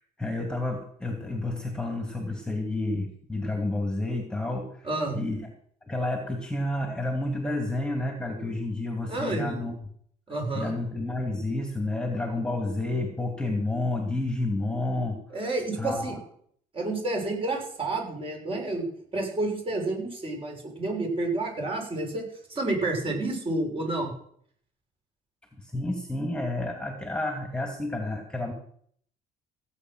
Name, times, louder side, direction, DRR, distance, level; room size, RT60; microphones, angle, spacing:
voice 1, 0.2-4.9 5.1-5.5 5.9-9.7 10.5-15.2 15.8-16.2 25.6-28.5, left 2 dB, 5° left, 2 dB, 2.4 m, -30 dB
voice 2, 4.8-5.2 9.1-9.7 10.3-10.7 15.3-16.2 16.7-22.3 22.5-24.1, right 2 dB, 30° right, 1 dB, 6.5 m, -30 dB
16.5 x 8.6 x 6.2 m, 0.62 s
cardioid pair, 110°, 17 cm